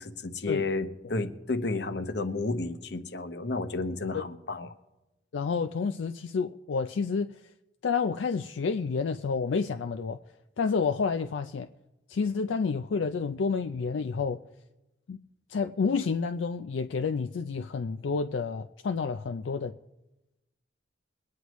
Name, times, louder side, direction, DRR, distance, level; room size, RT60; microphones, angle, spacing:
voice 1, 0.0-4.7, left 3 dB, 65° left, 0.9 m, -32 dB
voice 2, 5.3-7.3 7.8-10.2 10.6-11.7 12.1-14.4 15.1-15.2 15.5-19.7, left 5 dB, 80° left, 0.4 m, -29 dB
23.0 x 9.5 x 3.1 m
head